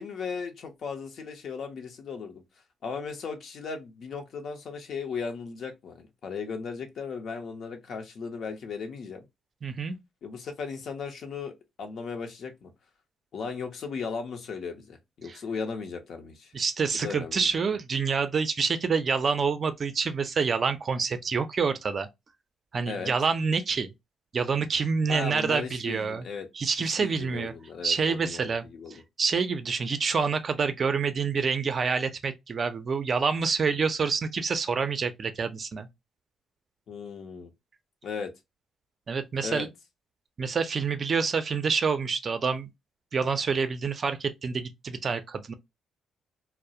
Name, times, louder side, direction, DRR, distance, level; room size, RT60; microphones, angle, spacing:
voice 1, 0.0-2.4 2.8-9.2 10.2-12.7 13.3-16.5 16.9-17.5 22.9-23.1 25.1-26.5 26.9-29.0 36.9-37.5 38.0-38.3 39.4-39.7, left 5 dB, 65° left, 0.6 m, -36 dB
voice 2, 9.6-10.0 15.3-15.4 16.5-22.1 22.7-23.9 24.3-26.2 26.5-27.5 27.8-28.7 29.2-35.9 39.1-39.7 40.4-42.7 43.1-45.5, right 5 dB, 45° right, 0.4 m, -27 dB
2.3 x 2.0 x 2.7 m
cardioid pair, 90°, 0 cm